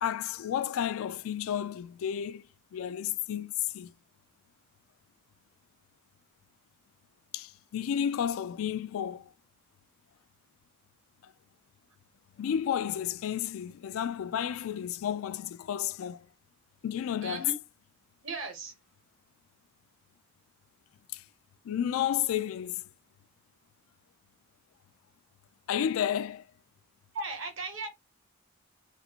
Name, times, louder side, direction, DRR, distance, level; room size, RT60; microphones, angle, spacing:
voice 1, 0.0-2.4 2.7-3.9 7.3-9.3 12.4-16.3 16.8-17.4 21.1-21.2 21.6-22.8 25.7-26.4, left 9 dB, 85° left, 0.3 m, -32 dB
voice 2, 17.2-17.5 18.2-18.7 27.1-27.9, right 3 dB, 70° right, 1.0 m, -36 dB
2.6 x 2.5 x 2.8 m
head